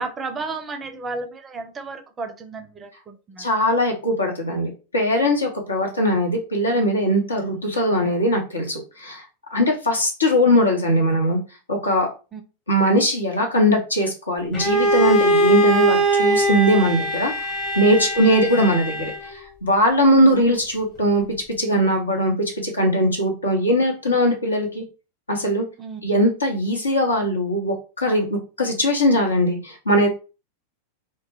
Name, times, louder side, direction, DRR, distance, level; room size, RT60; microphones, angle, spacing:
voice 1, 0.0-3.5 12.3-12.4 18.2-18.5 25.8-26.0, right 3 dB, 20° right, 7 dB, 0.4 m, -33 dB
voice 2, 3.4-9.2 9.5-11.4 11.7-12.1 12.7-17.3 17.8-21.2 21.6-24.8 25.3-25.6 26.0-30.1, equal, 80° left, 1 dB, 0.8 m, -20 dB
Bowed string instrument, 14.5-19.4, right 1 dB, 30° left, 1.0 m, -21 dB
2.2 x 2.1 x 3.4 m, 0.32 s
figure-of-eight pair, 90°, 0 cm